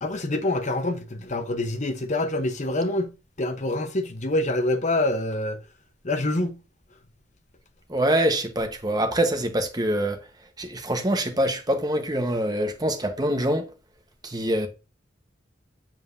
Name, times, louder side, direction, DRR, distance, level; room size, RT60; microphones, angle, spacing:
voice 1, 0.0-5.6 6.0-6.6, left 1 dB, 40° left, 0.9 m, -26 dB
voice 2, 7.9-10.2 10.6-13.7 14.2-14.7, right 1 dB, 20° right, 1.1 m, -24 dB
7.9 x 7.3 x 2.7 m
head